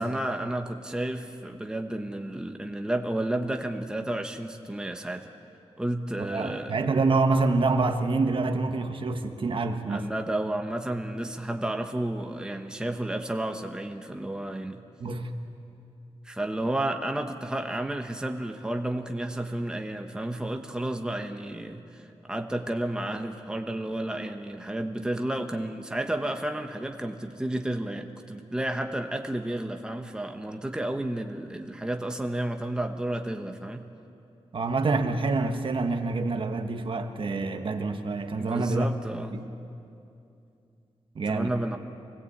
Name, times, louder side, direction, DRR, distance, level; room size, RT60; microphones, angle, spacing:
voice 1, 0.0-5.3 5.8-6.7 9.9-14.8 16.2-33.8 38.4-39.4 41.3-41.8, right 1 dB, 5° right, 5 dB, 1.0 m, -31 dB
voice 2, 6.2-10.1 15.0-15.3 34.5-38.9 39.3-39.4 41.1-41.5, right 3 dB, 50° right, 6 dB, 1.3 m, -26 dB
24.5 x 18.0 x 8.5 m, 2.6 s
wide cardioid pair, 135°, 11 cm